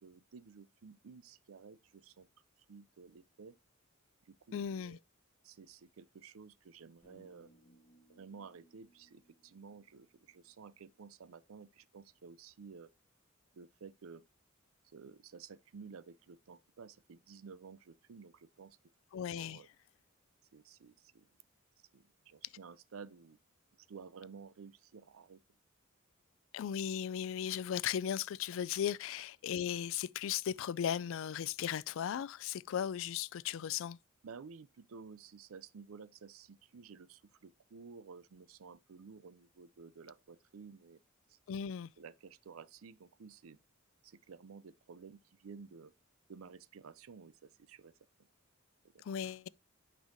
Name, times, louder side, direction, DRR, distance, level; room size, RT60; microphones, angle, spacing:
voice 1, 0.0-2.3 2.7-3.6 4.2-5.0 5.4-7.5 8.1-12.9 13.5-14.2 14.8-18.8 19.3-19.7 20.5-21.3 21.9-23.4 23.8-25.4 34.2-41.0 41.3-41.4 42.0-43.6 44.0-45.9 46.3-47.9 48.9-49.1, right 5 dB, 80° right, 0.5 m, -53 dB
voice 2, 4.5-5.0 19.1-19.6 26.5-34.0 41.5-41.9 49.0-49.5, left 9 dB, 70° left, 0.3 m, -36 dB
sound 1, 7.0-11.2, right 1 dB, 25° left, 2.0 m, -67 dB
8.8 x 5.4 x 2.6 m
head